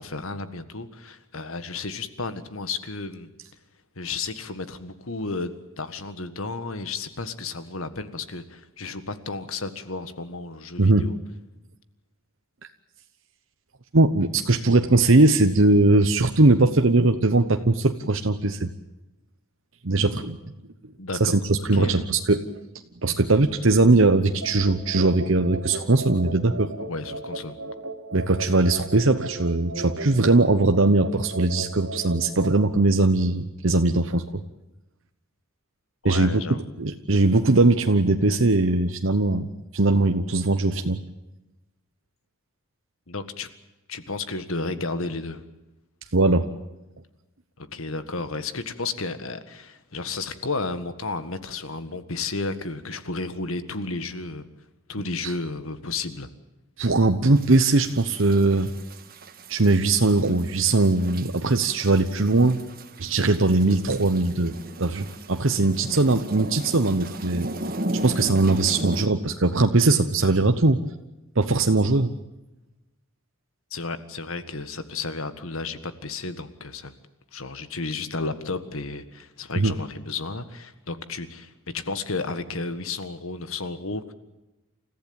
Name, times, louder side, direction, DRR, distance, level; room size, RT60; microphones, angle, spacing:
voice 1, 0.0-3.3 4.0-11.2 21.0-21.4 21.7-21.9 26.8-27.6 36.0-36.7 43.1-43.5 43.9-45.4 47.6-54.5 54.9-56.3 73.7-76.9 77.3-84.1, left 3 dB, 70° left, 11 dB, 1.7 m, -32 dB
voice 2, 13.9-18.7 19.8-20.4 21.2-22.4 23.0-26.7 28.1-34.4 36.0-36.4 36.8-41.0 46.1-46.5 55.2-55.3 56.8-58.7 59.5-62.6 63.0-64.5 64.8-67.5 68.0-70.8 71.4-72.1 79.6-79.7, right 2 dB, 65° right, 7 dB, 1.0 m, -20 dB
sound 1, 24.4-32.6, right 2 dB, 85° right, 2.7 m, -36 dB
sound 2, 57.4-69.1, right 1 dB, 40° right, 1.6 m, -36 dB
29.0 x 15.0 x 8.9 m, 0.99 s
head